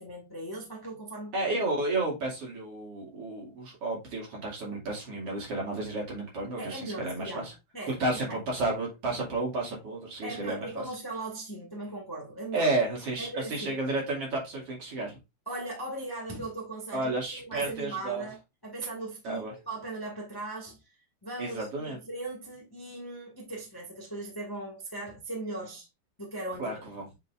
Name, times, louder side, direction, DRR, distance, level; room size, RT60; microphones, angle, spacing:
voice 1, 0.0-1.3 6.6-8.4 10.2-12.7 13.2-13.8 15.4-17.1 17.5-18.4 18.6-20.8 21.2-25.9 26.2-26.8, right 2 dB, 10° left, 1.5 m, -38 dB
voice 2, 1.3-7.5 7.9-10.8 12.5-15.2 16.9-18.3 19.2-19.5 21.4-22.0 26.6-27.1, right 2 dB, 55° right, 3.4 m, -32 dB
8.0 x 4.8 x 2.6 m
omnidirectional pair, 3.4 m